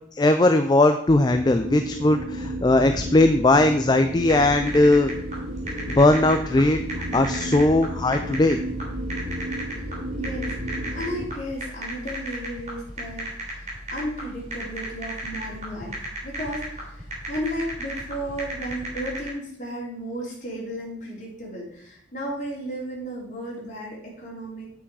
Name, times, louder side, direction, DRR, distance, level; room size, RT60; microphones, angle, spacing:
voice 1, 0.2-5.1 5.9-6.8 7.1-8.6, left 2 dB, 20° left, 8 dB, 0.4 m, -19 dB
sound 1, 1.3-11.3, equal, 70° right, 1.7 m, -33 dB
sound 2, 4.2-19.3, right 1 dB, 35° right, 4.0 m, -35 dB
voice 2, 10.2-24.6, equal, 40° left, -3 dB, 3.3 m, -34 dB
8.4 x 6.0 x 4.7 m, 0.66 s
head